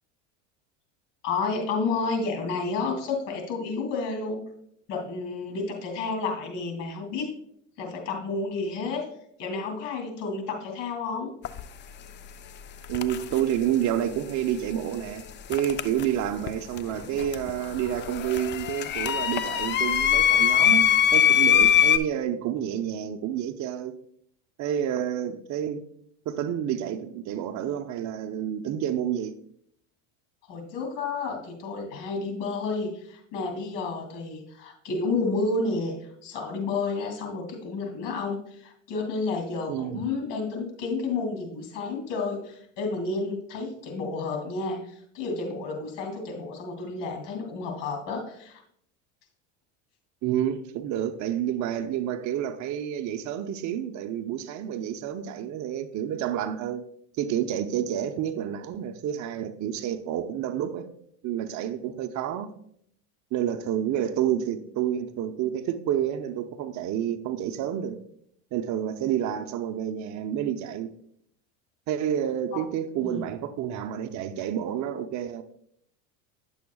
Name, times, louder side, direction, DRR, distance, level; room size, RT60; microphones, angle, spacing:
voice 1, 1.2-4.4 4.9-7.3 7.8-9.1 9.4-11.3 30.5-48.6 72.5-72.6 73.0-73.2, left 3 dB, 75° left, 2.8 m, -31 dB
sound 1, 11.4-11.6 12.8-13.4 15.5-16.5 16.8-22.0, left 9 dB, 30° left, 0.4 m, -22 dB
voice 2, 12.9-24.0 24.6-25.8 26.3-29.3 39.7-40.1 50.2-56.8 57.2-60.9 61.2-62.5 63.3-68.0 68.5-70.9 71.9-75.4, right 10 dB, 50° right, 0.7 m, -29 dB
10.0 x 7.0 x 2.3 m
supercardioid pair, 100°, 37 cm